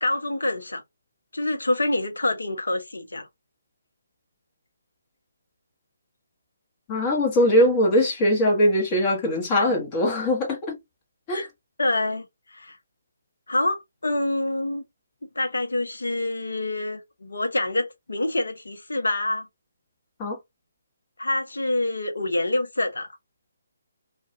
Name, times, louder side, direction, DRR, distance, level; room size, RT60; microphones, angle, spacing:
voice 1, 0.0-0.8 1.3-3.3 11.3-11.5 11.8-12.3 12.5-12.8 13.5-14.8 15.3-19.5 21.2-23.1, left 2 dB, 75° left, 0.7 m, -26 dB
voice 2, 6.9-10.8 11.3-11.5 20.2-20.4, left 1 dB, 25° left, 0.9 m, -21 dB
2.3 x 2.2 x 2.7 m
figure-of-eight pair, 145°, 0 cm